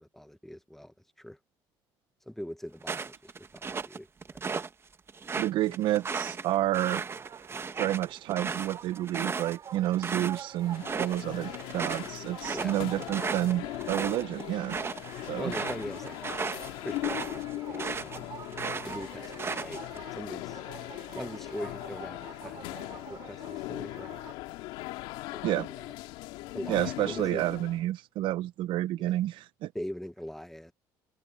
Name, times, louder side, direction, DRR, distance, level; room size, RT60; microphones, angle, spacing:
voice 1, 0.0-1.4 2.3-4.5 12.5-12.8 15.4-16.5 16.8-18.3 18.8-19.8 20.1-20.6 21.1-24.2 25.3-25.9 26.5-27.4 29.0-29.1 29.7-30.7, equal, 5° left, 1.2 m, -41 dB
sound 1, 2.8-4.7 5.1-10.4 10.7-11.2 11.5-18.2 18.5-20.0, right 5 dB, 30° right, 1.3 m, -35 dB
voice 2, 5.4-7.1 7.8-14.8 15.3-15.5 25.4-25.7 26.7-29.7, right 14 dB, 70° right, 0.9 m, -30 dB
sound 2, 7.1-24.3, right 8 dB, 45° right, 3.6 m, -48 dB
sound 3, 10.5-27.8, left 19 dB, 85° left, 2.3 m, -39 dB
supercardioid pair, 90°, 9 cm